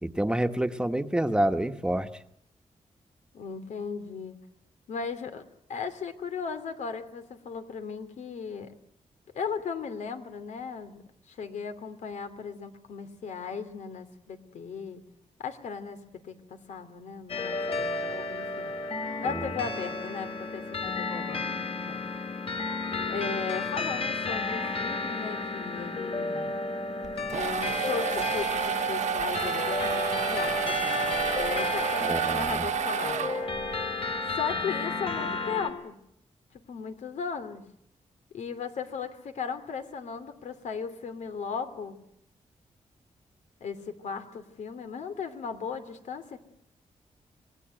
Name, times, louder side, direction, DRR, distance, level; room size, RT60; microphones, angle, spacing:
voice 1, 0.0-2.1 19.2-19.5 32.0-32.7, right 1 dB, 5° right, 8 dB, 1.3 m, -28 dB
voice 2, 3.3-4.4 4.9-8.7 9.3-15.0 15.4-18.7 19.2-22.0 23.1-26.5 27.3-33.3 34.3-36.0 36.5-37.6 38.3-42.0 43.6-46.4, left 6 dB, 85° left, 9 dB, 2.9 m, -37 dB
sound 1, 17.3-35.7, left 3 dB, 50° left, 4.2 m, -32 dB
sound 2, 27.0-33.7, right 9 dB, 80° right, 1.4 m, -30 dB
26.5 x 19.5 x 9.2 m, 0.74 s
cardioid pair, 105°, 12 cm